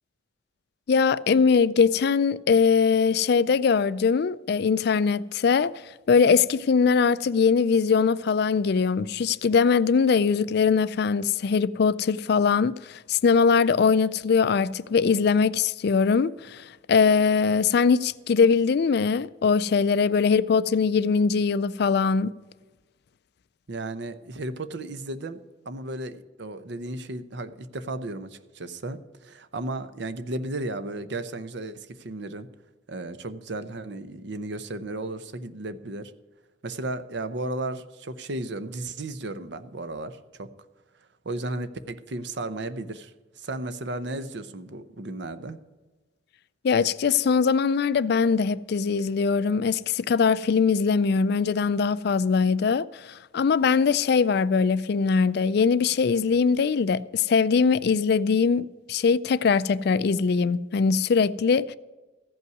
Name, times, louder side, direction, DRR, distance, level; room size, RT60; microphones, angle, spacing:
voice 1, 0.9-5.7 6.1-22.3 46.6-61.8, left 5 dB, 55° left, 0.4 m, -22 dB
voice 2, 23.7-25.4 25.7-32.5 32.9-36.1 36.6-40.5 41.2-45.6, right 2 dB, 60° right, 0.7 m, -34 dB
14.5 x 5.6 x 9.2 m
head